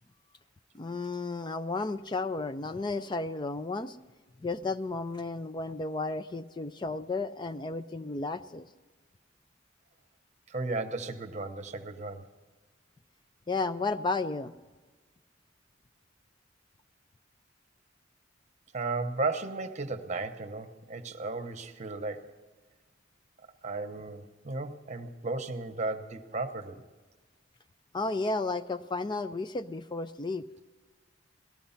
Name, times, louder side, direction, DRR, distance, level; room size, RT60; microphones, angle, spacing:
voice 1, 0.7-4.0 4.4-8.6 13.5-14.6 27.9-30.4, left 3 dB, 25° left, 11 dB, 0.4 m, -33 dB
voice 2, 10.5-12.3 18.7-22.3 23.6-26.8, right 3 dB, 35° right, 7 dB, 0.9 m, -35 dB
18.0 x 14.0 x 5.7 m, 1.3 s
head